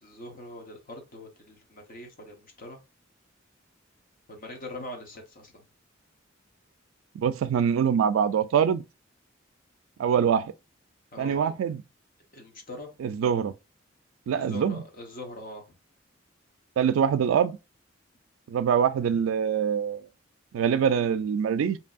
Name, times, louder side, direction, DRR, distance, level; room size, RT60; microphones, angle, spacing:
voice 1, 0.0-2.8 4.3-5.6 11.1-11.5 12.3-12.9 14.3-15.8, left 1 dB, 45° left, 0.9 m, -42 dB
voice 2, 7.1-8.8 10.0-10.5 11.2-11.8 13.0-13.5 14.3-14.8 16.8-17.6 18.5-20.0 20.5-21.8, right 7 dB, 85° right, 0.3 m, -24 dB
2.8 x 2.6 x 2.4 m
head